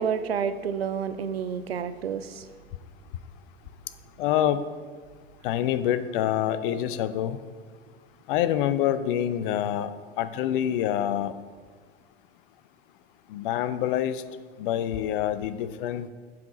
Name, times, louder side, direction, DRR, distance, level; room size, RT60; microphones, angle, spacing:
voice 1, 0.0-2.5, right 7 dB, 85° right, 0.5 m, -29 dB
voice 2, 4.2-4.6 5.4-7.4 8.3-9.9 10.2-11.3 13.3-14.2 14.6-16.1, left 11 dB, 60° left, 0.6 m, -26 dB
7.7 x 5.6 x 4.9 m
figure-of-eight pair, 75°, 30 cm